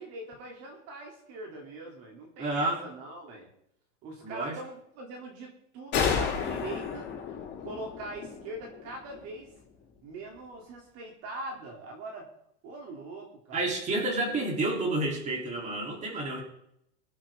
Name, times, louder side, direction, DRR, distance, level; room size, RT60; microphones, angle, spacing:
voice 1, 0.0-3.5 4.0-7.1 7.6-9.5 10.0-12.3 12.6-13.7 14.3-14.5, right 2 dB, 45° right, 1 dB, 3.4 m, -42 dB
voice 2, 2.4-2.8 4.2-4.5 13.5-16.4, right 2 dB, 20° right, 0 dB, 3.7 m, -30 dB
sound 1, 5.9-9.5, left 6 dB, 30° left, 5.6 m, -32 dB
22.0 x 8.8 x 3.8 m, 0.74 s
supercardioid pair, 145°, 35 cm